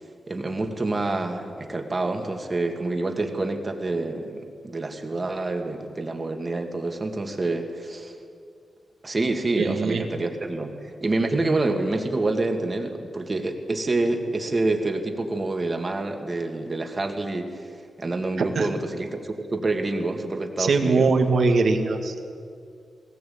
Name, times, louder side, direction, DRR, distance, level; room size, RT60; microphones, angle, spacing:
voice 1, 0.3-8.1 9.0-21.1, right 2 dB, 25° right, 5 dB, 2.1 m, -27 dB
voice 2, 9.6-10.1 18.4-18.7 20.6-22.2, right 4 dB, 55° right, 6 dB, 1.9 m, -21 dB
20.5 x 18.5 x 8.7 m, 2.3 s
wide cardioid pair, 165°, 0 cm